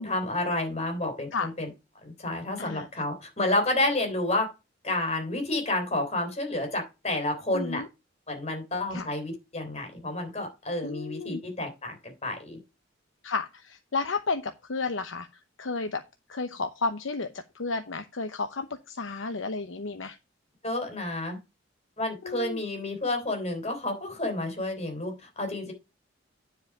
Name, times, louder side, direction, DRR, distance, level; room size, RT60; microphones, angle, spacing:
voice 1, 0.0-1.7 2.0-4.5 4.8-7.8 8.3-12.6 20.6-21.4 22.0-25.7, left 2 dB, 35° left, 4 dB, 3.6 m, -30 dB
voice 2, 7.5-7.9 8.9-9.1 10.8-11.4 13.2-15.3 15.6-16.0 16.3-17.3 17.5-20.2 22.2-22.6, left 4 dB, 85° left, 8 dB, 0.8 m, -32 dB
9.8 x 4.9 x 4.8 m, 0.26 s
head